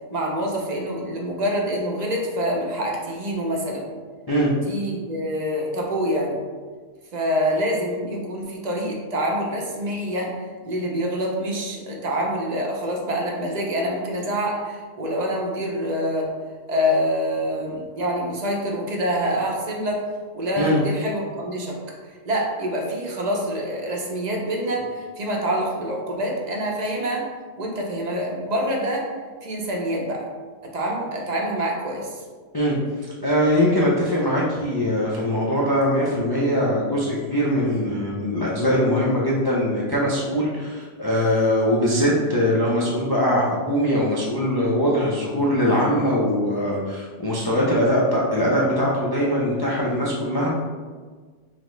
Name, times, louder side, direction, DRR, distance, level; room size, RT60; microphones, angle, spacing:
voice 1, 0.1-3.9 4.6-6.4 7.1-16.3 16.7-20.1 20.3-21.8 22.3-27.3 27.6-29.1 29.4-30.3 30.7-32.2, equal, 40° right, -1 dB, 0.7 m, -26 dB
voice 2, 33.2-50.5, equal, 40° left, -6 dB, 0.3 m, -21 dB
5.7 x 2.0 x 3.1 m, 1.5 s
omnidirectional pair, 1.3 m